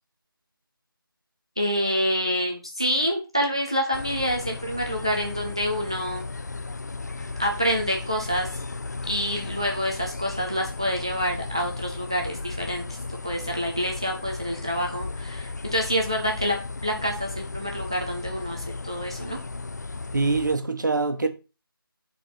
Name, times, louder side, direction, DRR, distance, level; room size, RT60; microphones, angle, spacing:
voice 1, 1.6-6.3 7.4-8.5 9.1-12.8 13.2-19.4, equal, 15° right, 0.5 m, -27 dB
sound 1, 3.9-20.6, left 3 dB, 50° left, 0.4 m, -35 dB
voice 2, 20.1-21.3, right 3 dB, 55° right, 1.2 m, -24 dB
6.4 x 4.2 x 5.4 m
figure-of-eight pair, 175°, 12 cm